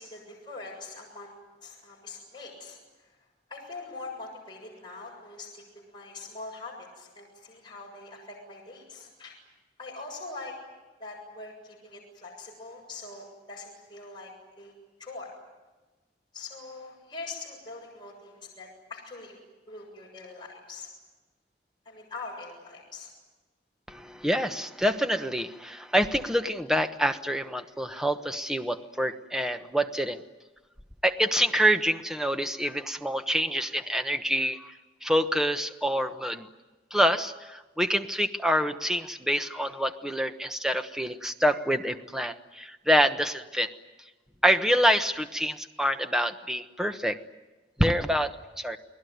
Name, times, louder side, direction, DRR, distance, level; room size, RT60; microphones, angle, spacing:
voice 1, 0.0-1.3 1.6-2.8 3.5-9.4 9.8-10.6 11.0-14.7 15.0-15.3 16.3-20.9 21.9-23.1, left 3 dB, 25° left, -2 dB, 7.2 m, -43 dB
voice 2, 23.9-30.2 31.0-34.7 35.0-36.5 36.9-43.7 44.4-47.2 47.8-48.8, equal, 5° right, 7 dB, 1.1 m, -26 dB
30.0 x 20.0 x 9.5 m, 1.2 s
head